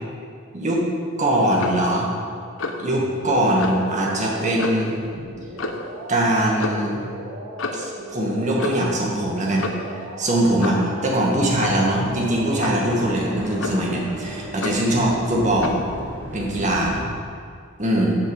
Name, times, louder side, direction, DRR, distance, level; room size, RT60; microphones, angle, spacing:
voice 1, 1.2-2.1 2.8-5.0 6.1-7.0 7.7-9.6 9.9-15.7 16.3-17.0 17.8-18.2, right 1 dB, 35° right, -3 dB, 1.6 m, -21 dB
Clock, 1.6-1.9 2.6-2.9 3.6-3.8 4.6-4.9 5.6-5.9 6.6-6.8 7.6-7.9 8.6-8.9 9.6-9.9 10.6-10.9 11.6-11.9 12.6-12.9 13.6-14.0 14.6-14.9 15.6-15.9, left 3 dB, 70° left, 0.7 m, -30 dB
sound 1, 3.0-15.8, right 2 dB, 85° right, 1.0 m, -38 dB
sound 2, 11.4-17.1, equal, 5° right, 1.3 m, -36 dB
7.8 x 5.7 x 6.5 m, 2.2 s
head